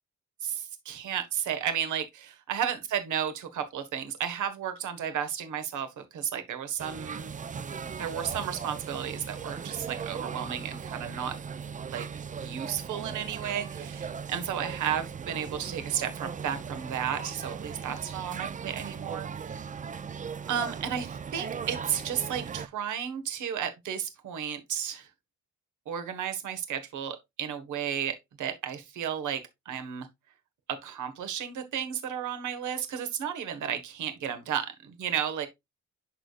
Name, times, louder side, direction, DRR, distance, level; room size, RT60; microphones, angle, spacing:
voice 1, 0.4-7.3 8.0-11.4 11.9-12.1 12.3-19.6 20.5-25.1 25.9-30.1 30.7-35.5, right 9 dB, 75° right, 1.5 m, -33 dB
sound 1, 6.8-22.7, right 6 dB, 25° right, 0.4 m, -38 dB
11.5 x 3.8 x 2.4 m
cardioid pair, 90°, 30 cm